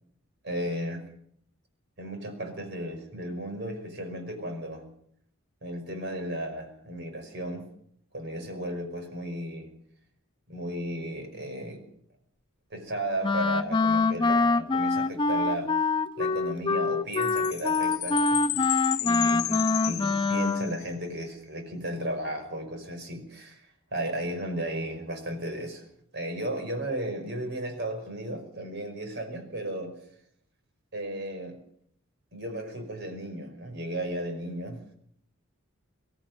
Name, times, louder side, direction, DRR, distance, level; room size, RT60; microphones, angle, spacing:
voice 1, 0.4-1.0 2.0-4.8 5.6-7.7 8.1-9.7 10.5-11.8 12.7-15.7 16.2-18.8 19.0-25.8 26.1-29.9 30.9-31.6 32.3-34.8, right 1 dB, 55° right, 5 dB, 5.5 m, -35 dB
Wind instrument woodwind instrument, 13.2-20.8, left 3 dB, 25° left, 0.7 m, -25 dB
Chime, 17.1-20.8, left 15 dB, 80° left, 1.0 m, -33 dB
25.5 x 13.5 x 8.0 m, 0.69 s
head